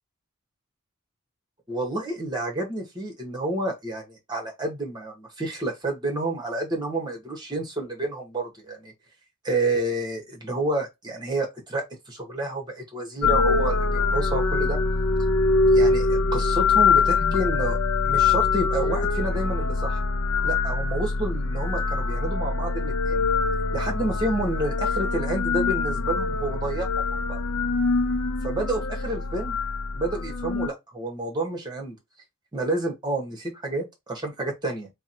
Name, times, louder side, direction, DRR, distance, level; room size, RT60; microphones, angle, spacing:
voice 1, 1.7-8.9 9.4-14.8 15.6-17.8 18.0-20.0 20.4-23.3 23.7-27.4 28.4-29.6 29.9-32.0 32.5-34.9, right 2 dB, 20° right, 1.4 m, -29 dB
sound 1, 13.2-30.7, left 4 dB, 80° left, 0.5 m, -24 dB
3.5 x 2.3 x 4.3 m
head